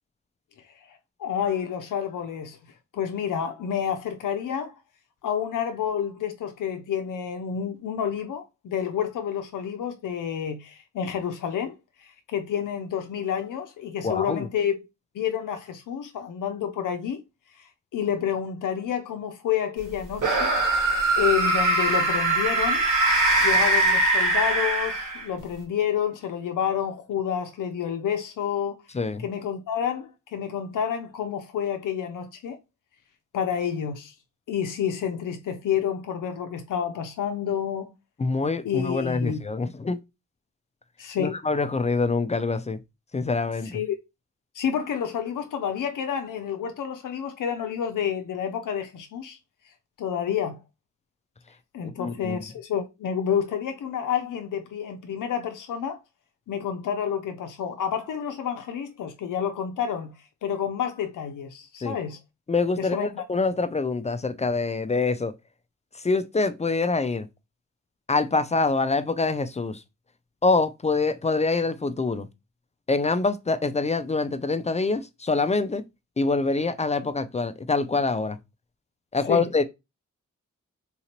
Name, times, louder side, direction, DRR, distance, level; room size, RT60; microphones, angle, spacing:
voice 1, 0.9-2.6 2.9-4.8 5.2-14.8 15.1-17.2 17.6-20.5 21.2-22.9 23.4-28.8 29.2-32.6 33.3-34.1 34.5-37.9 38.6-39.4 41.0-41.4 43.7-44.0 44.5-49.4 50.0-50.6 51.7-56.0 56.5-60.1 60.4-62.2 62.8-63.2 79.3-79.5, left 8 dB, 80° left, 0.5 m, -29 dB
voice 2, 14.0-14.5 28.9-29.2 38.2-40.0 41.2-42.8 43.1-43.8 51.8-52.4 61.8-62.0 62.5-65.3 66.0-67.3 68.1-69.8 70.4-72.3 72.9-75.8 76.2-78.4 79.1-79.6, left 3 dB, 20° left, 0.4 m, -25 dB
sound 1, 20.2-25.4, right 2 dB, 75° right, 1.4 m, -22 dB
3.7 x 2.8 x 2.9 m
cardioid pair, 75°, 31 cm